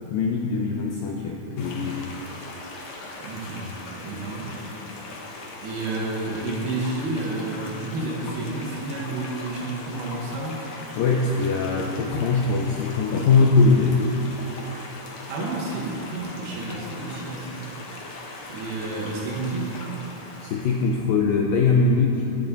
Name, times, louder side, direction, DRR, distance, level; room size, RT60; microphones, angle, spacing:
voice 1, 0.1-2.1 11.0-14.1 20.4-22.3, left 4 dB, 85° left, 0 dB, 2.0 m, -21 dB
sound 1, 1.6-21.0, left 2 dB, 60° left, 1.9 m, -39 dB
voice 2, 3.2-3.7 4.0-4.5 5.6-10.6 11.8-11.9 15.3-17.8 18.5-19.7, right 2 dB, 70° right, -3 dB, 3.3 m, -30 dB
18.5 x 7.3 x 4.0 m, 2.9 s
omnidirectional pair, 4.8 m